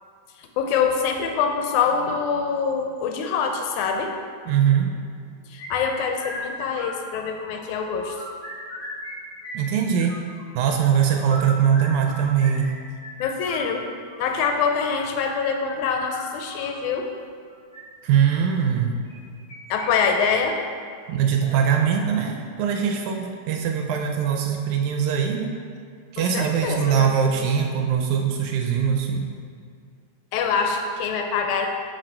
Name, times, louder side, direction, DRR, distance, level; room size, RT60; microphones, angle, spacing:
voice 1, 0.6-4.1 5.5-8.2 13.2-13.9 14.2-17.1 19.7-20.6 26.2-27.5 30.3-31.7, left 6 dB, 80° left, 4 dB, 1.9 m, -25 dB
voice 2, 4.5-4.9 9.5-10.2 10.5-12.7 18.0-19.0 21.1-25.5 26.1-29.3, right 8 dB, 80° right, 3 dB, 1.8 m, -22 dB
sound 1, 5.6-7.5 7.8-9.1 9.4-10.4 11.1-16.7 17.5-17.8 19.0-19.9 20.1-20.2 20.7-20.8 21.4-21.8, left 1 dB, 50° left, 1.2 m, -38 dB
5.8 x 5.1 x 4.4 m, 2.2 s
omnidirectional pair, 3.7 m